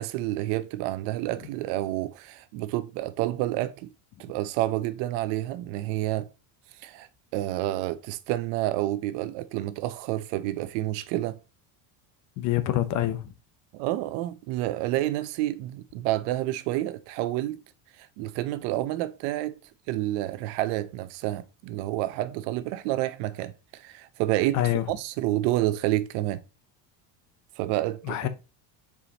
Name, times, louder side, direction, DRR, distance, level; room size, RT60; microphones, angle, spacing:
voice 1, 0.0-3.9 4.2-6.3 6.8-11.4 13.7-17.6 18.0-19.6 19.9-26.4 27.6-28.3, right 15 dB, 70° right, 0.7 m, -29 dB
voice 2, 12.4-13.3 24.5-24.8 28.0-28.3, left 13 dB, 40° left, 0.7 m, -26 dB
6.9 x 4.9 x 2.8 m
cardioid pair, 165°, 44 cm